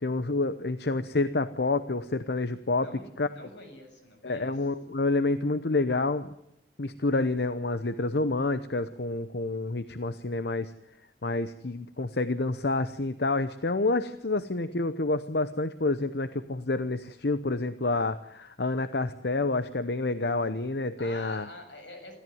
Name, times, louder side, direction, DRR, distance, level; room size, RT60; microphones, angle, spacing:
voice 1, 0.0-2.9 3.2-3.3 4.2-6.3 6.8-10.7 11.2-21.5, left 2 dB, 65° left, 12 dB, 0.9 m, -28 dB
voice 2, 2.6-4.6 21.0-22.2, left 1 dB, 85° left, 5 dB, 7.3 m, -46 dB
28.0 x 14.5 x 9.4 m, 0.77 s
head